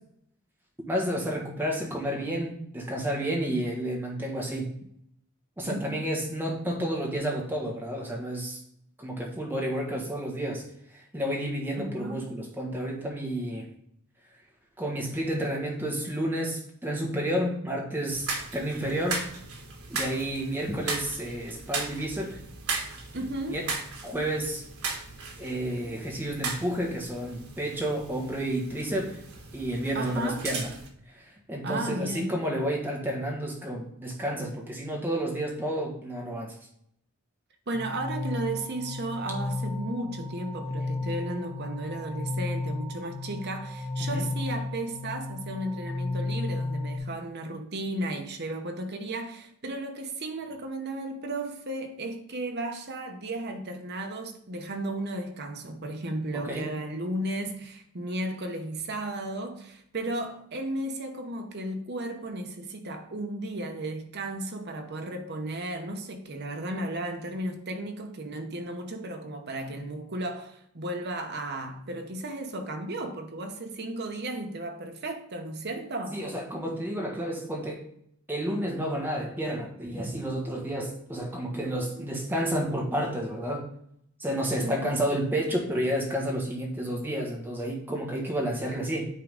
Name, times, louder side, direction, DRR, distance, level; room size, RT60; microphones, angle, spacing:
voice 1, 0.9-4.7 5.6-8.6 9.0-10.6 10.9-13.7 14.8-19.2 19.9-22.4 23.5-23.7 24.0-24.6 25.4-29.2 29.5-30.7 31.1-36.5 44.0-44.3 56.4-56.7 76.1-77.8 78.3-83.7 84.2-89.1, right 1 dB, 10° right, 1.4 m, -30 dB
voice 2, 5.7-6.0 11.8-12.2 23.1-23.6 29.9-30.5 31.6-32.3 37.7-76.2 84.6-85.1, right 1 dB, 50° right, 0.9 m, -34 dB
sound 1, 18.1-30.9, right 4 dB, 85° right, 1.3 m, -37 dB
sound 2, 37.7-47.0, left 2 dB, 20° left, 1.0 m, -33 dB
9.4 x 3.7 x 3.6 m
head